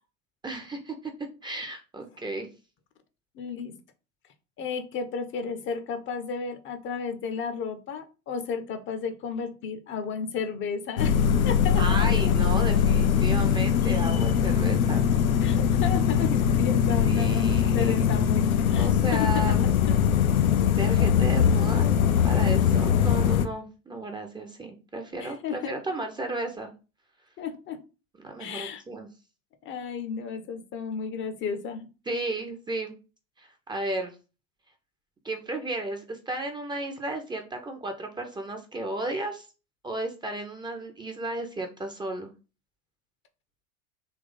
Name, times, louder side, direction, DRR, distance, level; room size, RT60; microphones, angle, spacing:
voice 1, 0.4-1.1 1.4-2.5 11.8-15.1 17.0-18.1 18.8-19.6 20.7-26.7 28.2-29.1 32.1-33.0 33.4-34.1 35.2-39.5 39.8-42.3, right 2 dB, 10° right, 4 dB, 0.6 m, -34 dB
voice 2, 3.4-3.7 4.6-12.1 15.4-19.4 19.9-20.0 25.2-25.7 27.4-27.8 28.4-28.8 29.6-31.9, left 6 dB, 30° left, 9 dB, 0.6 m, -33 dB
sound 1, 11.0-23.5, left 8 dB, 80° left, 0.6 m, -22 dB
3.5 x 3.0 x 3.9 m, 0.32 s
figure-of-eight pair, 85°, 42 cm